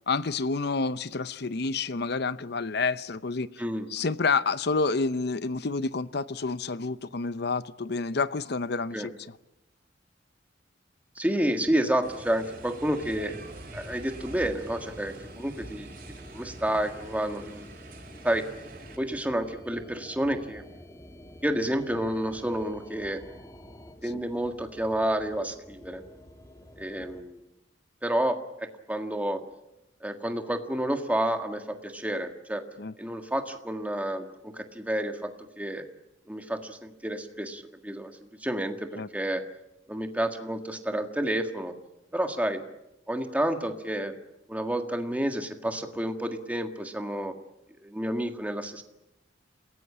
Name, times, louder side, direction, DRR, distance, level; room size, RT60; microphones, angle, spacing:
voice 1, 0.1-3.6 3.9-9.4 32.8-32.9 39.0-39.1, left 4 dB, 60° left, 15 dB, 0.8 m, -29 dB
voice 2, 11.2-13.4 13.7-15.9 16.3-17.7 18.2-18.4 19.0-20.7 21.4-23.2 24.0-26.0 26.8-27.4 28.0-29.4 30.0-32.6 33.0-35.3 35.6-35.8 36.3-38.1 38.4-39.4 39.9-41.7 42.1-42.6 43.1-44.1 44.5-47.3 47.8-48.8, right 1 dB, 10° right, 5 dB, 1.7 m, -30 dB
sound 1, 12.0-19.0, right 2 dB, 55° right, 5.2 m, -45 dB
sound 2, 13.0-27.2, equal, 20° left, 2.2 m, -49 dB
28.0 x 16.5 x 8.6 m, 0.91 s
head